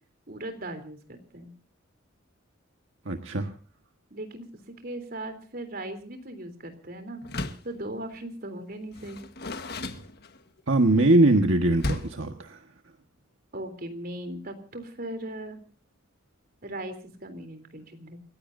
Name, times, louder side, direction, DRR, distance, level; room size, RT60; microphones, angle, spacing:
voice 1, 0.3-1.5 4.1-4.5 4.8-7.2 7.6-9.2 13.5-15.6 16.6-16.9 17.2-18.2, right 1 dB, 45° right, 7 dB, 3.5 m, -38 dB
voice 2, 3.0-3.5 10.7-12.6, right 2 dB, 70° right, 5 dB, 1.6 m, -21 dB
Door, 7.2-7.8 8.9-10.6 11.8-12.3, left 2 dB, 50° left, 1.5 m, -34 dB
29.0 x 16.0 x 2.7 m, 0.40 s
head